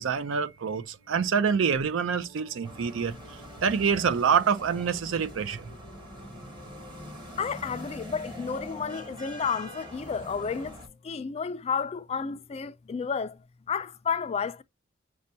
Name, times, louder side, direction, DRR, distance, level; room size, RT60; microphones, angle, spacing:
voice 1, 0.0-3.2 3.6-5.7, right 6 dB, 70° right, 0.5 m, -26 dB
sound 1, 0.7-11.0, left 3 dB, 50° right, 1.7 m, -53 dB
sound 2, 2.6-10.9, equal, 25° right, 1.0 m, -44 dB
voice 2, 7.4-13.4 13.7-14.6, left 6 dB, 30° left, 0.3 m, -31 dB
6.3 x 2.2 x 2.7 m
head